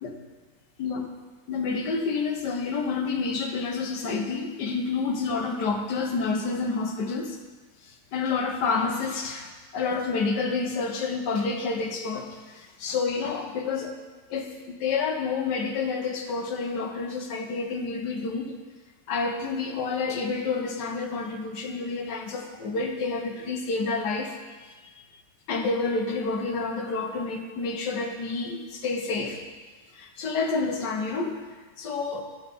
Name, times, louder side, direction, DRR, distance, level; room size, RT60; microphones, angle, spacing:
voice 1, 1.5-7.4 7.8-14.0 14.3-18.5 19.1-24.9 25.5-29.4 29.9-31.4 31.8-32.2, left 4 dB, 70° left, 3 dB, 1.5 m, -29 dB
11.5 x 4.5 x 5.2 m, 1.4 s
omnidirectional pair, 2.0 m